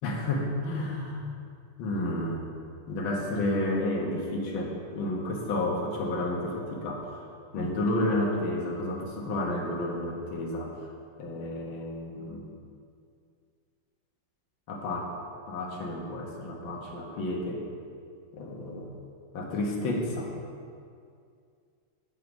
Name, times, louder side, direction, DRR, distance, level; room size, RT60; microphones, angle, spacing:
voice 1, 0.0-1.2 1.8-2.5 2.9-7.0 7.5-10.7 11.2-12.4 14.7-15.1 15.5-17.6 18.3-18.9 19.3-20.3, left 1 dB, 65° left, -1 dB, 2.1 m, -31 dB
8.3 x 8.3 x 5.3 m, 2.3 s
omnidirectional pair, 2.4 m